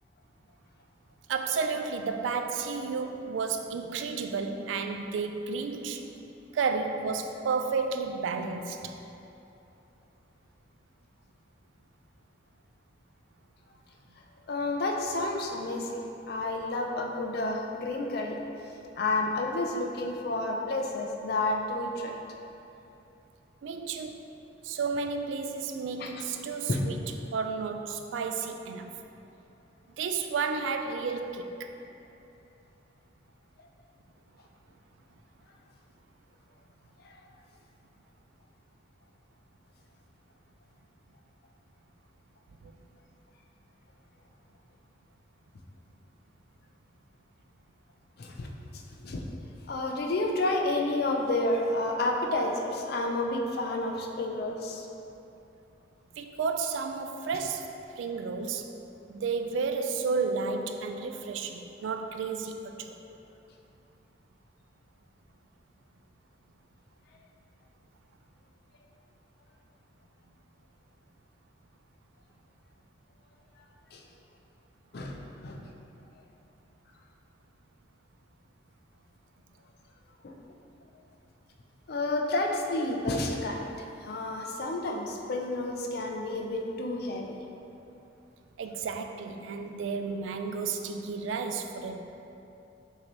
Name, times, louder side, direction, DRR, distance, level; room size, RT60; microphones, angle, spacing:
voice 1, 1.3-6.0 6.5-8.9 23.6-24.2 24.6-27.0 27.3-28.9 30.0-31.7 56.2-58.7 59.1-62.9 88.6-92.0, right 5 dB, 90° right, 6 dB, 0.3 m, -32 dB
voice 2, 14.5-15.9 16.3-18.4 19.0-22.2 26.0-26.1 26.7-26.8 37.0-37.2 48.2-49.3 49.7-54.9 73.9-74.0 74.9-75.7 80.2-80.3 81.9-87.2, left 2 dB, 55° left, 1 dB, 0.4 m, -30 dB
5.9 x 2.8 x 3.1 m, 2.8 s
head